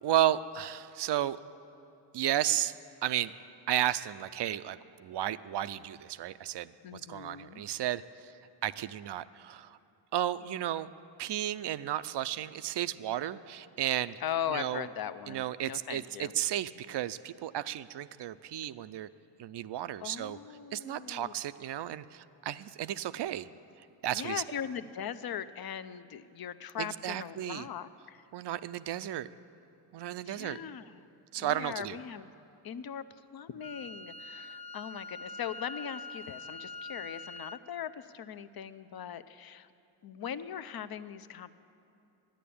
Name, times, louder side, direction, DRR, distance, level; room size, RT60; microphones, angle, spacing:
voice 1, 0.0-1.4 2.1-3.3 3.7-8.3 8.6-9.8 10.1-10.9 11.2-14.2 14.5-14.9 15.3-19.1 19.4-20.4 20.7-23.5 23.8-24.4 26.8-27.7 28.3-29.3 29.9-30.6 31.3-32.0, right 12 dB, 60° right, 15 dB, 0.6 m, -33 dB
voice 2, 6.8-7.6 14.2-16.3 20.0-21.3 24.1-28.2 30.3-31.0 31.4-32.3 32.6-39.7 40.0-41.5, left 9 dB, 50° left, 13 dB, 0.7 m, -40 dB
Wind instrument woodwind instrument, 33.6-37.6, left 3 dB, 15° left, 0.5 m, -44 dB
11.5 x 10.0 x 8.6 m, 2.8 s
cardioid pair, 60°, 47 cm